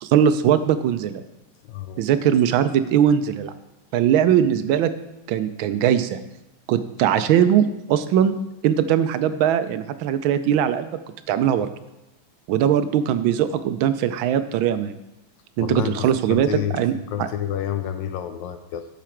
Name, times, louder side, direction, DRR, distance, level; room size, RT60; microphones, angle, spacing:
voice 1, 0.0-1.2 2.0-3.5 3.9-4.9 5.3-6.2 6.7-10.9 11.3-11.7 12.5-14.9 15.6-16.9 17.2-17.3, right 9 dB, 75° right, 11 dB, 1.3 m, -20 dB
voice 2, 1.7-2.0 15.6-16.8 17.1-18.9, left 10 dB, 75° left, 9 dB, 1.1 m, -29 dB
12.0 x 5.9 x 4.5 m, 0.95 s
omnidirectional pair, 2.3 m